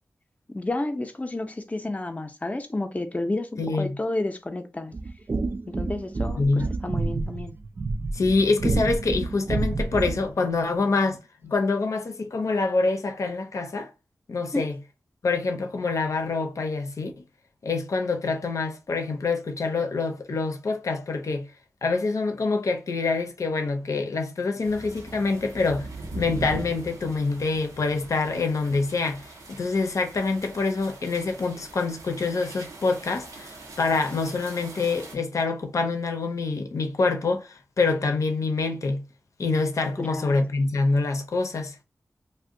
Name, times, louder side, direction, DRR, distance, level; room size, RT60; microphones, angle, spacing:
voice 1, 0.5-4.9 5.7-7.5 14.5-14.7 40.0-40.6, left 2 dB, 25° left, 0.5 m, -31 dB
voice 2, 3.6-4.0 6.4-6.7 8.1-13.9 14.3-14.8 15.2-17.1 17.6-21.5 21.8-25.9 26.2-39.0 39.4-41.7, left 3 dB, 70° left, 0.6 m, -26 dB
sound 1, 4.9-10.3, right 3 dB, 40° right, 0.3 m, -29 dB
sound 2, 24.6-35.2, right 2 dB, 85° right, 0.7 m, -41 dB
2.5 x 2.2 x 3.6 m
wide cardioid pair, 65°, 6 cm